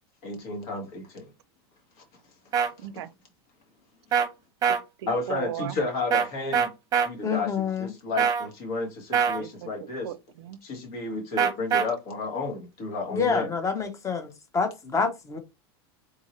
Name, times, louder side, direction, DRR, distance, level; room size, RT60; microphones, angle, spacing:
voice 1, 0.2-1.3 5.1-10.1 10.6-13.5, left 3 dB, 60° left, 1.7 m, -32 dB
sound 1, 2.5-2.7 4.1-4.3 4.6-4.8 6.1-6.3 6.5-7.1 8.2-8.5 9.1-9.4 11.4-11.8, right 7 dB, 25° right, 0.8 m, -22 dB
voice 2, 2.8-3.1 4.7-5.8 9.4-9.7 10.0-10.6 13.2-13.4, right 10 dB, 85° right, 0.4 m, -37 dB
voice 3, 7.2-7.9 13.1-15.4, left 5 dB, 20° left, 0.9 m, -27 dB
3.7 x 2.7 x 3.1 m
supercardioid pair, 115°, 14 cm